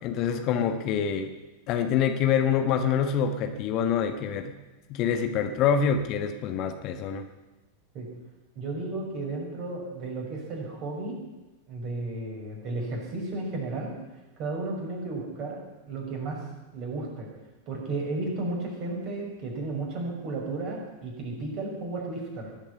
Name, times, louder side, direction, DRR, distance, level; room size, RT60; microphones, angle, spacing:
voice 1, 0.0-1.3 1.7-4.5 4.9-7.3, left 7 dB, 40° left, 7 dB, 1.4 m, -26 dB
voice 2, 8.5-11.2 11.7-13.9 14.4-15.6 15.9-16.4 16.7-17.3 17.7-22.5, right 2 dB, 40° right, -1 dB, 6.0 m, -33 dB
20.0 x 7.3 x 9.7 m, 1.1 s
figure-of-eight pair, 90°, 0 cm